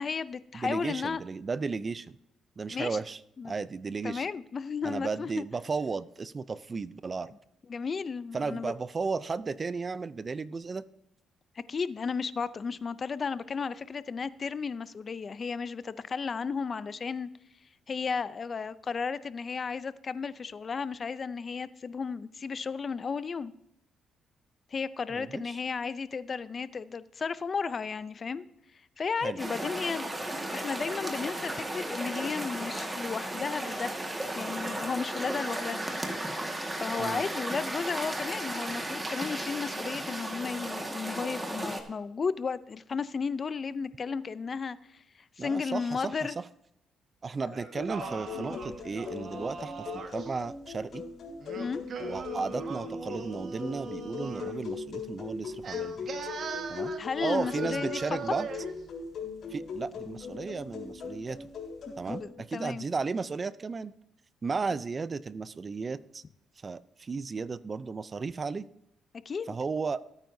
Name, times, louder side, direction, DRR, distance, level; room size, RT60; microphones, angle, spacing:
voice 1, 0.0-1.2 2.7-3.0 3.4-3.5 4.0-5.4 7.7-8.7 11.7-17.3 17.9-23.5 24.7-28.4 29.0-30.1 30.5-35.9 36.8-45.0 45.4-46.3 47.5-47.6 48.3-48.6 51.6-51.8 57.0-58.0 61.9-62.8 69.3-69.5, left 5 dB, 40° left, 16 dB, 0.5 m, -34 dB
voice 2, 0.5-2.2 2.6-3.2 3.4-4.3 4.8-7.3 8.3-10.9 25.1-25.6 29.2-29.4 37.0-37.2 45.4-46.4 47.2-51.0 52.0-55.9 56.7-56.9 57.2-58.5 59.5-61.5 62.0-63.9 64.4-66.2 66.6-68.7 69.5-70.0, right 4 dB, 35° right, 16 dB, 0.5 m, -34 dB
sound 1, 29.4-41.8, right 1 dB, 15° right, 1.7 m, -35 dB
Singing, 47.5-50.3 51.4-54.6 55.6-58.7, right 5 dB, 55° right, 1.5 m, -40 dB
sound 2, 47.7-62.2, left 5 dB, 65° left, 4.0 m, -39 dB
18.0 x 9.0 x 2.7 m, 0.79 s
cardioid pair, 90°, 0 cm